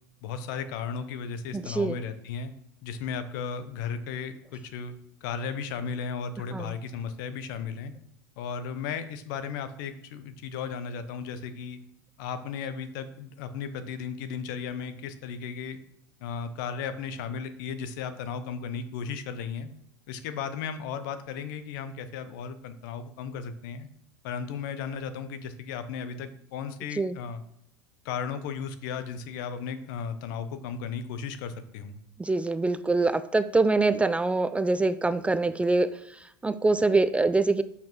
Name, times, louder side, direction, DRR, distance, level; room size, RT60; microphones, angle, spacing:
voice 1, 0.2-2.5 2.8-4.9 5.2-7.9 8.4-11.8 12.2-15.8 16.2-19.7 20.1-23.9 24.2-27.4 28.0-32.0, left 6 dB, 65° left, 11 dB, 0.8 m, -35 dB
voice 2, 1.5-2.0 6.5-6.7 27.0-27.2 32.2-35.9 36.4-37.6, right 3 dB, 10° right, 13 dB, 0.4 m, -24 dB
7.1 x 5.6 x 3.1 m, 0.74 s
hypercardioid pair, 85°, 11 cm